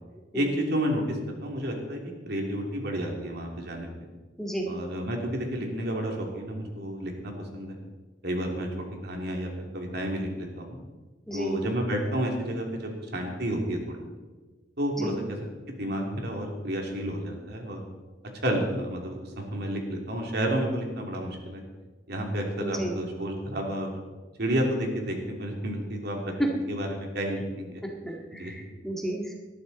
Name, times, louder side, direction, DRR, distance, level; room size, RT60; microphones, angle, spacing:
voice 1, 0.3-3.9 4.7-7.8 8.2-8.7 9.0-10.8 11.3-14.0 14.8-15.4 15.7-17.8 18.4-21.6 22.1-23.9 24.4-27.7 28.4-28.5, equal, 65° right, 1 dB, 2.9 m, -31 dB
voice 2, 4.4-4.7 11.3-11.6 15.0-15.1 22.6-22.9 26.4-26.5 27.8-29.3, right 1 dB, ahead, 0 dB, 1.9 m, -31 dB
19.5 x 12.5 x 4.2 m, 1.3 s
head